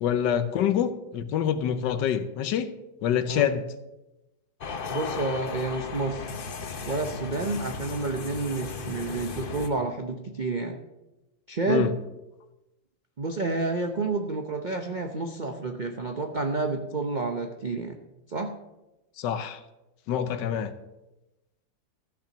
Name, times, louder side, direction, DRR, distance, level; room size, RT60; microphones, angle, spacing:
voice 1, 0.0-2.7 3.0-3.6 11.7-11.9 19.2-19.6 20.1-20.7, left 9 dB, 70° left, 12 dB, 1.3 m, -26 dB
sound 1, 4.6-9.7, left 5 dB, 55° left, 0.6 m, -36 dB
voice 2, 4.9-6.3 6.8-10.8 11.5-12.0 13.2-18.0 18.3-18.6, right 3 dB, 80° right, 4 dB, 0.4 m, -29 dB
13.5 x 5.9 x 6.8 m, 0.98 s
omnidirectional pair, 2.1 m